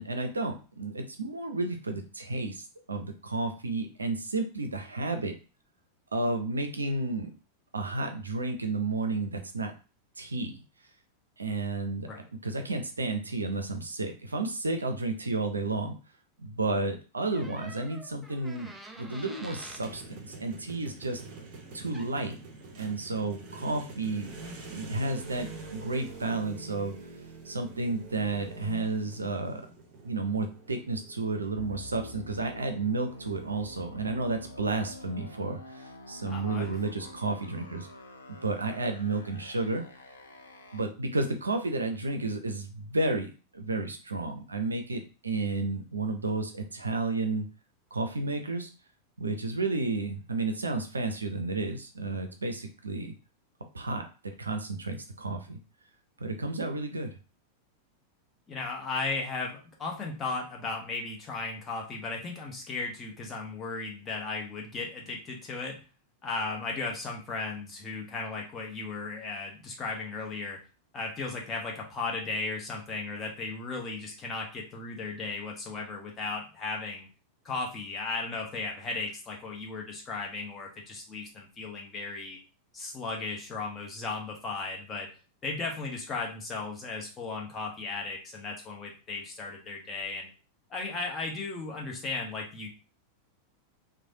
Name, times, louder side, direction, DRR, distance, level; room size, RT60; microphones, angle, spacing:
voice 1, 0.0-5.3 6.1-7.3 7.7-9.7 10.2-10.6 11.4-12.1 12.4-16.0 16.4-21.2 21.7-22.4 22.8-24.3 24.7-27.0 27.5-29.6 30.0-37.9 38.4-39.8 40.7-47.5 47.9-48.7 49.2-53.1 53.7-54.1 54.4-55.6 56.2-57.1, right 3 dB, 75° right, 6 dB, 0.4 m, -32 dB
Door, 17.3-19.9 21.7-21.8 21.9-22.3, right 1 dB, 5° right, 0.4 m, -47 dB
sound 1, 19.6-33.9, right 3 dB, 40° right, 0.8 m, -47 dB
sound 2, 31.6-40.8, left 2 dB, 75° left, 0.5 m, -47 dB
voice 2, 36.2-36.7 58.5-65.8 66.2-70.6 70.9-77.1 77.4-82.4 82.7-85.1 85.4-90.3 90.7-92.7, left 3 dB, 25° left, 0 dB, 0.9 m, -36 dB
3.1 x 2.1 x 2.6 m, 0.33 s
figure-of-eight pair, 90°, 0 cm